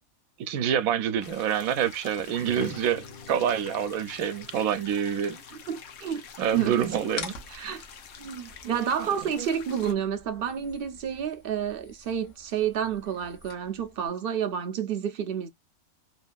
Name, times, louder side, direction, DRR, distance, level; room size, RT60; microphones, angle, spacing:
voice 1, 0.4-5.4 6.4-7.3 9.4-9.5, right 9 dB, 85° right, 1.0 m, -27 dB
sound 1, 1.2-9.9, left 7 dB, 90° left, 1.2 m, -47 dB
Strum, 2.4-8.7, left 2 dB, 35° left, 0.7 m, -50 dB
voice 2, 5.5-6.2 6.5-6.9 7.5-7.8 8.2-15.5, right 8 dB, 65° right, 0.5 m, -30 dB
sound 2, 7.1-14.1, left 4 dB, 65° left, 1.2 m, -46 dB
3.1 x 2.5 x 2.2 m
omnidirectional pair, 1.4 m